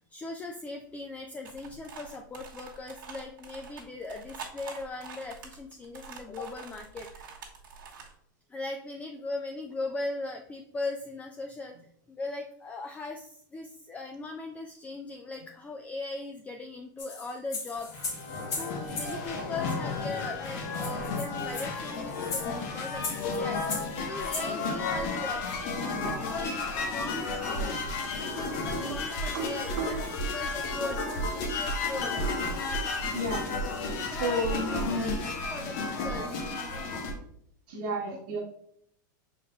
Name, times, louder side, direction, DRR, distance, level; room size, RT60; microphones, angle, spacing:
voice 1, 0.0-7.5 8.5-11.8 12.1-23.6 24.0-25.5 25.8-27.8 28.2-32.2 34.1-35.2 35.5-36.3, left 3 dB, 15° left, 4 dB, 0.3 m, -39 dB
sound 1, 1.4-8.1, right 6 dB, 85° right, 1.2 m, -46 dB
sound 2, 17.0-19.2 20.1-20.2 20.4-20.5 20.7-24.5, left 4 dB, 35° left, 1.3 m, -37 dB
sound 3, 17.8-37.1, left 3 dB, 55° left, 1.0 m, -32 dB
voice 2, 19.0-19.5 25.9-26.3 27.7-27.8 28.5-28.7 29.3-29.5 29.8-29.9 33.1-33.4 34.2-35.3 35.6-36.2 36.7-36.9 37.7-38.4, right 1 dB, 65° right, -5 dB, 1.1 m, -33 dB
5.3 x 3.9 x 2.3 m, 0.69 s
hypercardioid pair, 120°, 11 cm